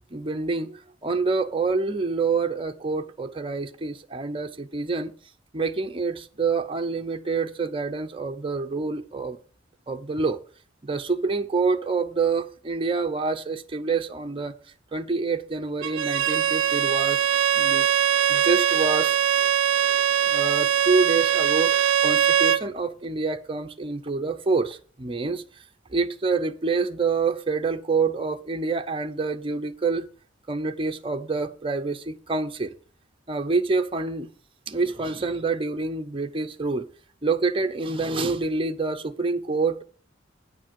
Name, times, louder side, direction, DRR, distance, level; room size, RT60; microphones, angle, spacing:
voice 1, 0.1-5.1 5.5-9.4 9.9-10.4 10.8-14.5 14.9-17.2 17.5-17.9 18.3-19.2 20.3-21.8 22.0-25.4 25.9-30.1 30.5-32.7 33.3-34.3 34.7-36.9 37.2-39.8, right 4 dB, 30° right, 0.6 m, -27 dB
Bowed string instrument, 15.8-22.7, right 9 dB, 70° right, 0.4 m, -22 dB
9.2 x 5.2 x 7.4 m
head